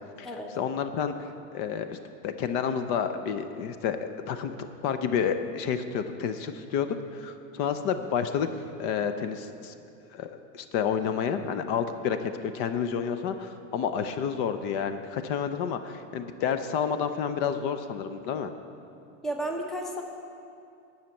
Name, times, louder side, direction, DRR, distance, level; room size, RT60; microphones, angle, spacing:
voice 1, 0.6-2.0 2.2-4.6 4.8-8.5 8.8-9.7 10.1-18.5, left 7 dB, 50° left, 9 dB, 0.6 m, -30 dB
voice 2, 19.2-20.0, right 1 dB, ahead, 2 dB, 0.6 m, -32 dB
10.5 x 5.8 x 8.4 m, 2.5 s
supercardioid pair, 145°, 39 cm